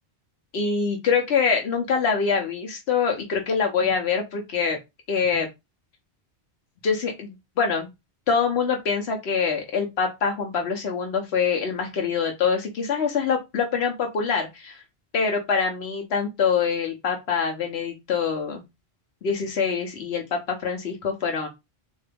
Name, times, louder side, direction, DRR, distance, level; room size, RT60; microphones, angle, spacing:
voice 1, 0.5-4.8 5.1-5.5 6.8-7.9 8.3-14.8 15.1-18.6 19.2-21.5, left 6 dB, 85° left, 2 dB, 1.1 m, -25 dB
3.7 x 2.7 x 3.3 m, 0.22 s
omnidirectional pair, 1.0 m